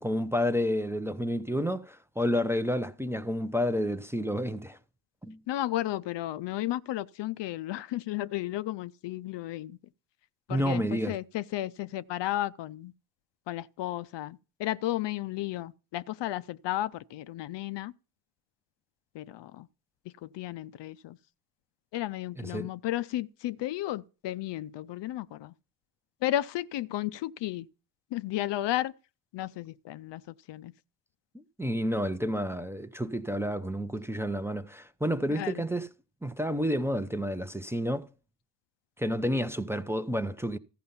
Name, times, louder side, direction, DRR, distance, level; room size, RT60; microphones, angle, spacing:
voice 1, 0.0-4.8 5.2-5.4 10.5-11.2 22.4-22.7 31.3-35.9 36.2-38.1 39.0-40.6, equal, 5° right, 0.6 m, -30 dB
voice 2, 5.5-9.8 10.5-12.9 13.5-17.9 19.1-19.7 20.2-21.2 21.9-25.5 26.2-27.7 28.1-28.9 29.3-30.7 35.3-35.6, left 14 dB, 60° left, 0.6 m, -33 dB
14.0 x 5.5 x 5.6 m
supercardioid pair, 70°, 49 cm